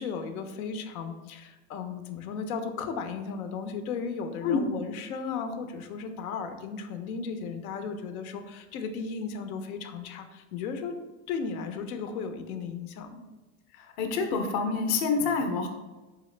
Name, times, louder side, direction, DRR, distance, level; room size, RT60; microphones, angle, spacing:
voice 1, 0.0-11.0 11.3-13.2, left 5 dB, 85° left, 8 dB, 0.6 m, -35 dB
voice 2, 13.8-15.7, left 5 dB, 40° left, 5 dB, 0.6 m, -27 dB
3.9 x 3.5 x 3.2 m, 1.2 s
supercardioid pair, 140°, 42 cm